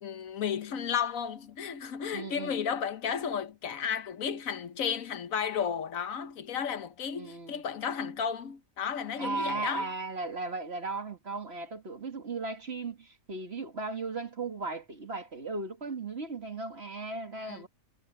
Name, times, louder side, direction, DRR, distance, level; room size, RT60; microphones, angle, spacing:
voice 1, 0.0-9.9 17.4-17.6, left 7 dB, 85° left, 1.5 m, -33 dB
voice 2, 2.1-2.6 7.1-7.6 9.2-17.7, right 3 dB, 50° right, 2.3 m, -36 dB
omnidirectional pair, 1.4 m